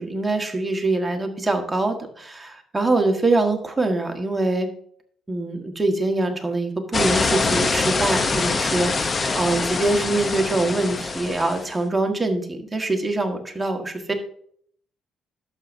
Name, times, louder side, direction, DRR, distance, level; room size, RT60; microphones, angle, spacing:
voice 1, 0.0-4.7 5.3-14.1, right 2 dB, 15° right, 3 dB, 1.5 m, -24 dB
sound 1, 6.9-11.7, left 4 dB, 35° left, 0.7 m, -24 dB
11.5 x 7.2 x 2.7 m, 0.62 s
cardioid pair, 90°, 0 cm